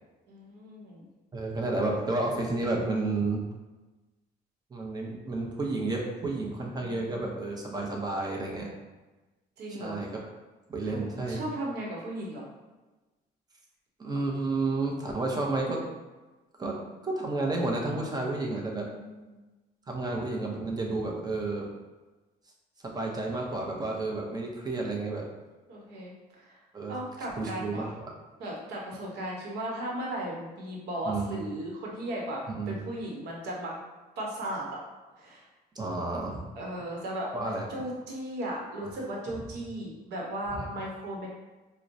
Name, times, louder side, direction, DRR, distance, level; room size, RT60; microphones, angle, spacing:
voice 1, 0.3-1.1 6.7-7.4 9.6-10.0 10.8-12.4 18.8-19.4 24.0-24.4 25.7-26.5 26.9-27.9 28.4-33.7 34.2-34.8 35.2-35.5 36.6-41.3, right 1 dB, 80° right, -2 dB, 0.9 m, -36 dB
voice 2, 1.3-3.4 4.7-8.7 9.7-10.1 10.7-11.4 14.0-15.8 16.6-16.8 17.0-18.9 19.9-21.7 22.8-25.3 26.7-27.0 27.4-27.9 31.0-31.4 32.5-32.8 35.7-36.4 37.3-37.7 38.8-38.9 39.3-39.4 40.5-40.7, right 2 dB, 25° right, -1 dB, 0.7 m, -31 dB
4.5 x 2.1 x 2.6 m, 1.2 s
cardioid pair, 110°, 17 cm